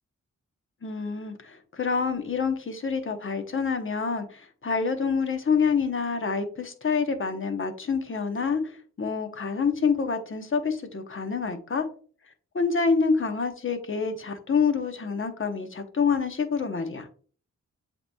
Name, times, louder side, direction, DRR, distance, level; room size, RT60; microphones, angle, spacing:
voice 1, 0.8-11.9 12.5-17.1, left 5 dB, 40° left, 6 dB, 0.9 m, -27 dB
7.7 x 3.0 x 2.3 m, 0.43 s
cardioid pair, 60°, 31 cm